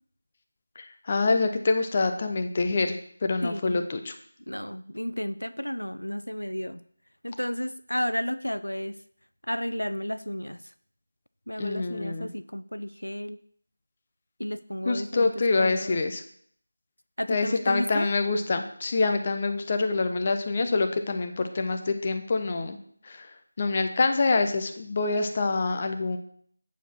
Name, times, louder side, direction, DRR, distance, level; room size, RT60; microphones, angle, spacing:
voice 1, 0.8-3.0 3.2-4.1 11.6-12.3 14.9-16.2 17.3-22.8 23.0-23.3 23.6-26.2, left 3 dB, 30° left, 6 dB, 0.7 m, -26 dB
voice 2, 3.4-3.9 4.5-6.9 7.2-9.0 9.4-10.7 11.5-13.4 14.4-16.0 17.2-18.1, equal, 80° left, 14 dB, 0.4 m, -32 dB
8.0 x 7.1 x 4.4 m, 0.63 s
figure-of-eight pair, 165°, 0 cm